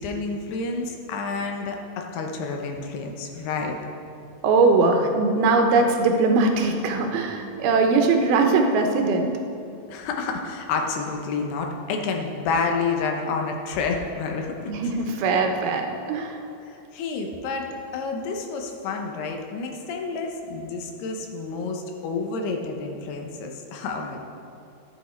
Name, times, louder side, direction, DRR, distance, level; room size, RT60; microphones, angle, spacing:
voice 1, 0.0-3.8 9.9-14.7 16.7-17.7 17.9-24.2, left 4 dB, 85° left, 2 dB, 3.0 m, -29 dB
voice 2, 4.4-9.3 14.7-16.4, right 3 dB, 75° right, 4 dB, 2.7 m, -21 dB
13.5 x 8.2 x 4.4 m, 2.6 s
omnidirectional pair, 4.6 m